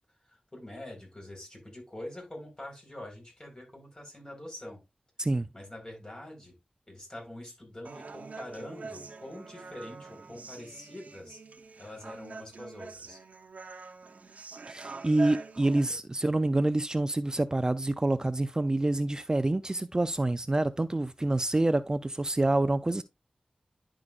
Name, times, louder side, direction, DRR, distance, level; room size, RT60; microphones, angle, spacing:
voice 1, 0.2-4.8 5.5-6.5 6.9-11.4 11.8-13.2, left 1 dB, 35° left, 4.2 m, -45 dB
Human voice, 7.8-15.8, right 4 dB, 85° right, 0.8 m, -44 dB
voice 2, 14.7-23.0, right 2 dB, 30° right, 0.4 m, -27 dB
10.5 x 5.0 x 2.4 m
wide cardioid pair, 55°, 2 cm